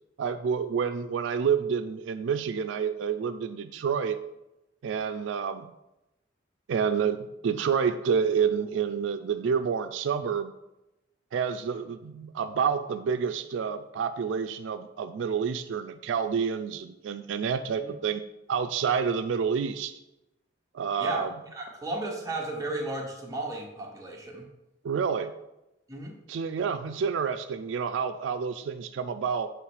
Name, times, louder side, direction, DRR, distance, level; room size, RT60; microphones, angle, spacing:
voice 1, 0.2-4.2 4.8-5.7 6.7-10.5 11.3-18.2 18.5-19.9 20.7-21.3 24.8-25.3 26.3-29.5, right 6 dB, 85° right, 10 dB, 0.3 m, -28 dB
voice 2, 21.5-24.5 25.9-26.1, right 2 dB, 20° right, -1 dB, 1.0 m, -34 dB
6.6 x 3.1 x 4.7 m, 0.93 s
head